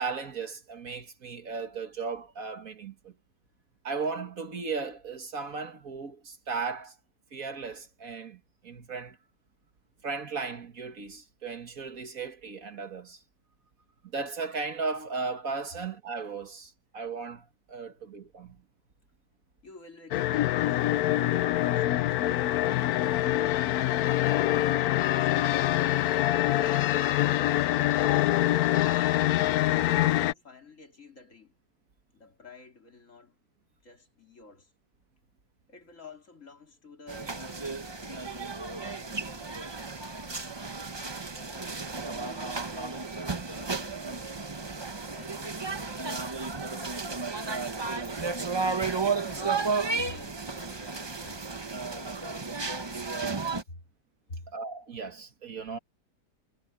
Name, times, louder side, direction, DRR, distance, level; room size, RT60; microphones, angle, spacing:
voice 1, 0.0-3.1 3.8-7.0 7.3-9.2 10.0-13.2 14.1-18.6 54.5-55.8, right 4 dB, 55° right, 2.0 m, -36 dB
voice 2, 19.6-23.7 29.8-31.5 32.1-33.4 33.8-34.7 35.7-39.6 41.3-43.1 43.4-44.3 45.1-46.7 47.4-47.8 48.5-52.7 53.7-53.8 54.3-54.5, left 3 dB, 50° left, 3.4 m, -51 dB
sound 1, 20.1-30.3, left 14 dB, 70° left, 1.1 m, -25 dB
sound 2, 37.1-53.6, right 4 dB, 25° right, 0.6 m, -33 dB
omnidirectional pair, 1.8 m